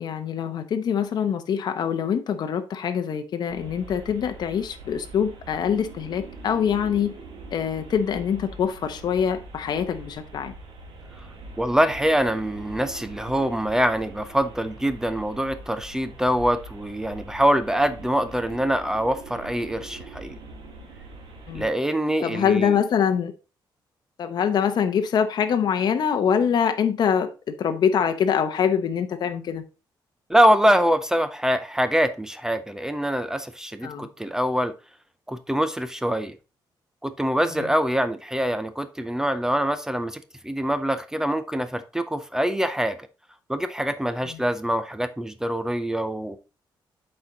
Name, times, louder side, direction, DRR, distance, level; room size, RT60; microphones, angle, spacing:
voice 1, 0.0-7.1 7.5-10.5 21.5-21.7 22.2-23.3 24.2-27.3 27.6-29.6 33.8-34.1 37.6-37.7, left 7 dB, 55° left, 0.8 m, -24 dB
sound 1, 3.5-21.7, right 2 dB, 90° right, 2.2 m, -43 dB
voice 2, 11.6-20.4 21.5-22.8 30.3-34.7 35.3-36.3 37.0-43.0 43.5-46.4, equal, 5° right, 0.5 m, -24 dB
8.0 x 4.4 x 3.8 m
cardioid pair, 145°, 8 cm